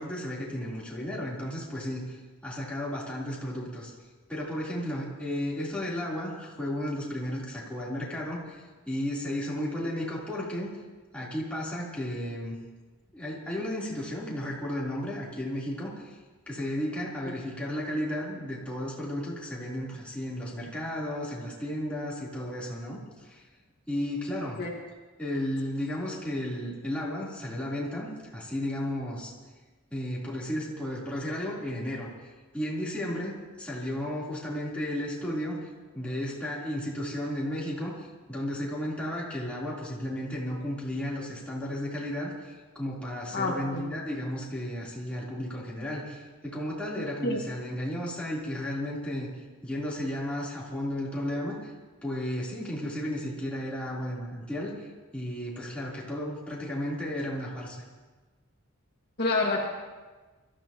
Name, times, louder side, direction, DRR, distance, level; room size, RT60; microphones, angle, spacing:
voice 1, 0.0-2.2 2.4-3.9 4.3-10.7 11.1-12.6 13.1-16.2 16.5-23.4 23.9-24.6 25.2-29.3 29.9-32.1 32.5-35.7 35.9-49.3 49.6-51.7 52.0-57.8, left 1 dB, 5° left, -7 dB, 3.6 m, -33 dB
voice 2, 43.3-43.8 47.2-47.4 59.2-59.7, left 2 dB, 50° left, -2 dB, 1.9 m, -28 dB
25.5 x 14.0 x 3.0 m, 1.3 s
head